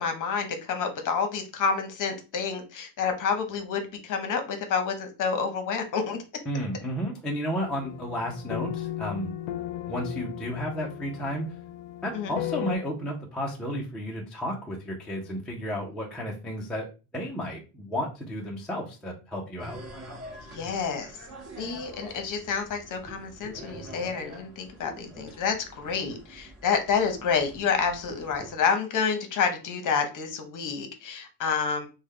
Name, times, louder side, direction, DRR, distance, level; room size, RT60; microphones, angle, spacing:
voice 1, 0.0-6.2 12.1-12.3 20.3-21.1 21.6-31.9, left 6 dB, 40° left, 6 dB, 0.8 m, -29 dB
voice 2, 6.5-9.3 9.9-11.5 12.0-16.9 17.1-19.8, equal, ahead, -2 dB, 0.3 m, -32 dB
sound 1, 7.5-12.8, left 13 dB, 70° left, 0.5 m, -36 dB
sound 2, 19.6-28.5, right 1 dB, 35° right, 1.0 m, -45 dB
3.1 x 2.2 x 3.5 m, 0.31 s
cardioid pair, 135°, 47 cm